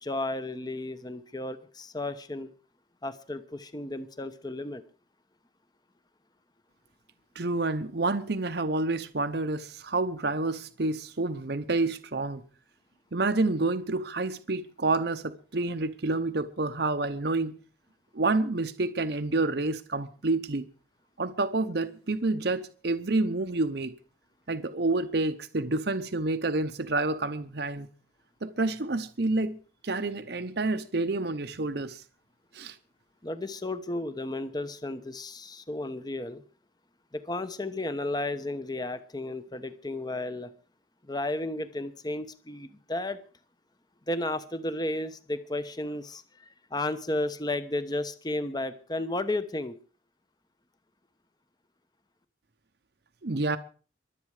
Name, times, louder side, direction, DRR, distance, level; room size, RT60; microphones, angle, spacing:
voice 1, 0.0-2.5 3.0-4.8 33.2-36.4 37.1-40.5 41.0-43.2 44.1-49.7, left 2 dB, 20° left, 0.9 m, -33 dB
voice 2, 7.3-12.4 13.1-17.5 18.1-20.7 21.2-23.9 24.5-27.9 28.4-29.6 29.8-32.0 32.5-32.8 53.2-53.6, right 2 dB, 55° right, 0.8 m, -28 dB
23.5 x 8.6 x 4.9 m
head